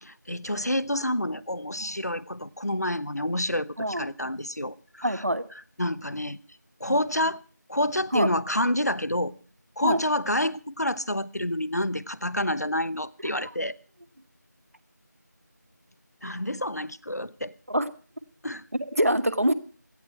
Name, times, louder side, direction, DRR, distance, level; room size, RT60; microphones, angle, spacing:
voice 1, 0.0-5.2 5.8-6.4 6.8-7.4 7.7-9.3 9.8-13.8 16.2-17.5 18.4-18.6, left 1 dB, 60° left, 0.9 m, -28 dB
voice 2, 5.0-5.4 6.9-7.0 8.1-8.3 9.8-10.0 17.7-17.9 18.8-19.5, equal, 50° right, 1.2 m, -24 dB
17.5 x 13.0 x 4.6 m
figure-of-eight pair, 180°, 10 cm